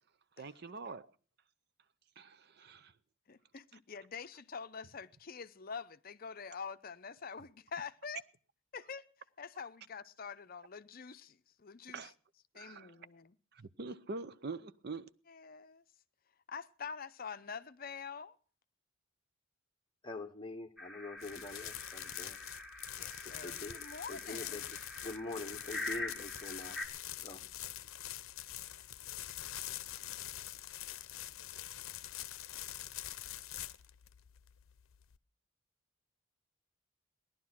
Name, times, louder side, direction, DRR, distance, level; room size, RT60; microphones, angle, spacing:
voice 1, 0.4-1.1 2.2-2.9 11.9-12.1 12.5-12.9 13.5-15.1, right 3 dB, 50° right, 0.6 m, -44 dB
voice 2, 3.3-8.2 8.7-9.1 9.4-12.1 12.5-13.4 15.3-15.8 16.5-18.4 23.0-24.7, left 6 dB, 45° left, 0.6 m, -46 dB
voice 3, 20.0-22.4 23.4-24.6 25.0-26.8 27.2-27.4, left 2 dB, 25° left, 0.9 m, -45 dB
sound 1, 20.8-26.9, left 2 dB, ahead, 1.8 m, -45 dB
sound 2, 21.2-35.2, left 13 dB, 90° left, 0.6 m, -45 dB
17.0 x 11.0 x 5.9 m
head